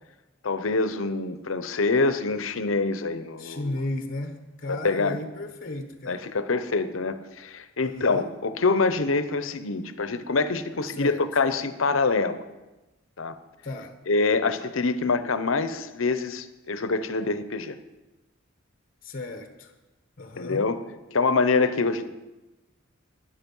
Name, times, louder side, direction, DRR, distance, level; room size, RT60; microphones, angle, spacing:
voice 1, 0.4-3.8 4.7-5.2 6.1-12.4 13.2-13.4 14.1-17.8 20.4-20.8 21.1-22.1, left 3 dB, 75° left, 12 dB, 0.8 m, -25 dB
voice 2, 3.4-6.2 7.8-8.3 10.9-11.2 13.6-13.9 19.0-19.7 20.2-20.7, left 2 dB, 45° left, 6 dB, 1.1 m, -34 dB
12.0 x 10.5 x 5.5 m, 1.1 s
head